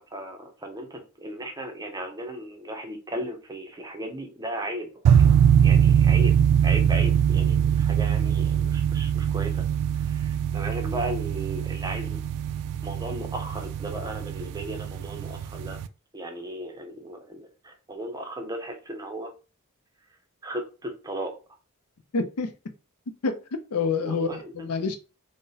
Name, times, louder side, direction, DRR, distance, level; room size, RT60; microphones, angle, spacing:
voice 1, 0.0-9.6 10.0-12.2 12.8-15.8 16.1-19.3 20.4-21.3 24.0-24.7, right 1 dB, 15° right, 0.5 m, -36 dB
sound 1, 5.0-15.9, right 8 dB, 85° right, 0.3 m, -22 dB
voice 2, 22.1-22.5 23.2-23.4 23.7-25.0, left 4 dB, 75° left, 0.5 m, -27 dB
2.5 x 2.1 x 3.9 m
head